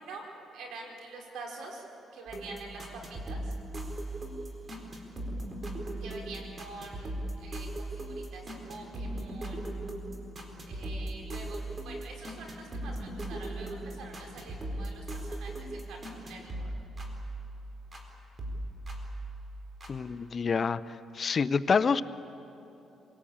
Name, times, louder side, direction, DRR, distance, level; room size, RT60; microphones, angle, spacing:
voice 1, 0.0-1.8 2.1-3.5 6.0-9.7 10.7-16.7, right 3 dB, 80° right, 0 dB, 5.0 m, -46 dB
sound 1, 2.3-18.1 18.4-19.9, right 1 dB, 35° right, 4.2 m, -38 dB
voice 2, 19.9-20.8 21.1-22.0, left 5 dB, 45° left, 14 dB, 0.6 m, -27 dB
26.0 x 19.0 x 8.7 m, 3.0 s
cardioid pair, 90°, 0 cm